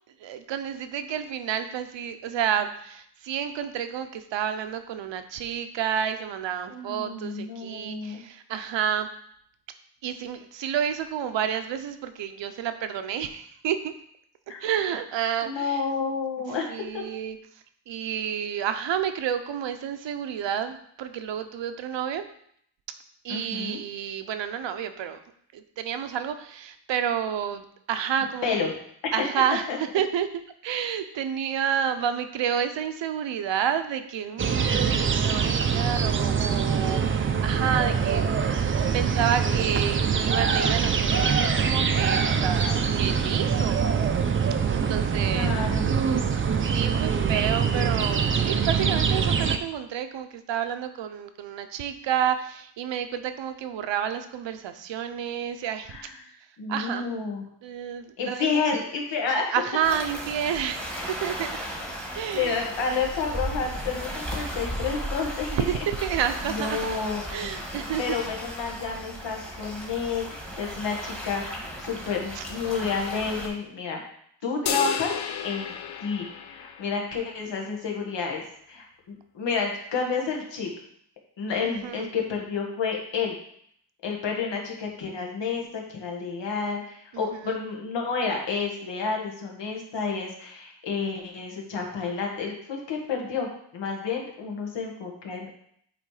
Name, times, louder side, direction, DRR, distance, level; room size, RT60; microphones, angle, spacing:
voice 1, 0.2-9.1 10.0-13.9 14.6-15.8 16.7-17.4 17.9-22.2 23.2-25.2 25.5-28.7 29.1-30.3 30.6-38.3 38.9-43.9 44.7-45.6 46.6-55.9 56.7-57.1 57.6-58.6 59.5-61.6 62.1-62.6 65.5-66.8 67.3-68.2 72.3-72.4 74.6-75.0 81.6-82.1 87.1-87.6, right 9 dB, 85° right, 9 dB, 0.8 m, -30 dB
voice 2, 6.7-8.2 14.5-14.6 15.4-17.0 23.3-23.8 28.4-28.7 29.0-29.1 29.7-29.8 45.3-45.9 55.9-56.1 56.6-57.4 58.2-59.5 62.3-65.5 66.4-67.5 68.0-74.0 74.4-75.1 75.4-75.7 76.0-80.7 81.4-83.3 84.0-93.5 93.7-95.5, left 5 dB, 80° left, 1 dB, 1.6 m, -30 dB
sound 1, 34.4-49.6, right 6 dB, 30° right, 0.4 m, -24 dB
sound 2, 59.8-73.5, equal, 5° left, 1.3 m, -35 dB
sound 3, 74.7-77.2, left 8 dB, 65° left, 0.7 m, -32 dB
8.5 x 3.3 x 4.8 m, 0.67 s
wide cardioid pair, 140°, 43 cm